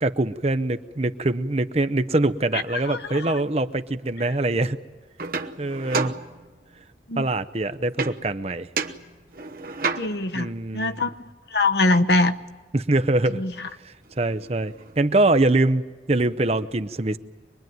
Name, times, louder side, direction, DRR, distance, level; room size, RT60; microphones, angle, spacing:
voice 1, 0.0-4.8 5.6-6.1 7.2-8.7 10.3-10.9 12.7-13.4 13.8-17.2, right 2 dB, 35° right, 11 dB, 0.7 m, -23 dB
voice 2, 2.9-3.3 7.1-7.2 10.0-11.1 11.5-12.3 13.3-13.7, left 2 dB, 70° left, 8 dB, 1.0 m, -23 dB
sound 1, 5.2-6.8 8.0-8.4 8.8-10.4 13.7-13.8 14.0-15.1, right 4 dB, 50° right, 1.1 m, -31 dB
24.5 x 21.0 x 9.4 m, 1.3 s
head